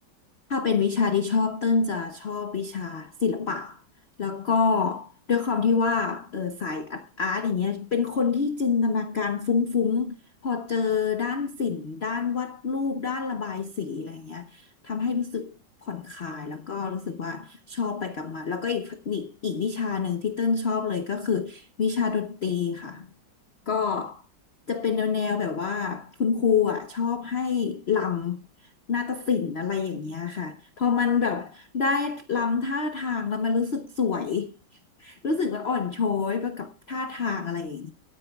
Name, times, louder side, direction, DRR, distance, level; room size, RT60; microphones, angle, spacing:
voice 1, 0.5-3.8 4.2-10.2 10.4-15.5 15.8-23.1 23.7-24.2 24.7-28.4 28.9-34.5 35.0-37.9, left 5 dB, 60° left, 0.6 m, -27 dB
25.0 x 9.8 x 2.3 m
omnidirectional pair, 2.2 m